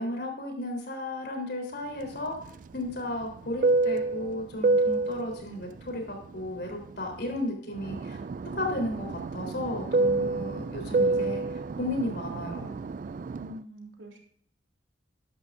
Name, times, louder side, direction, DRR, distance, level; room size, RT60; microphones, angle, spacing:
voice 1, 0.0-2.4 2.7-8.2 8.6-12.7, left 1 dB, 60° left, 2 dB, 3.7 m, -34 dB
Fixed-wing aircraft airplane, 2.0-7.4 7.7-13.6, right 3 dB, 45° right, 0.3 m, -29 dB
voice 2, 13.3-14.2, equal, 90° right, 1 dB, 3.2 m, -44 dB
14.0 x 11.0 x 2.6 m, 0.63 s
head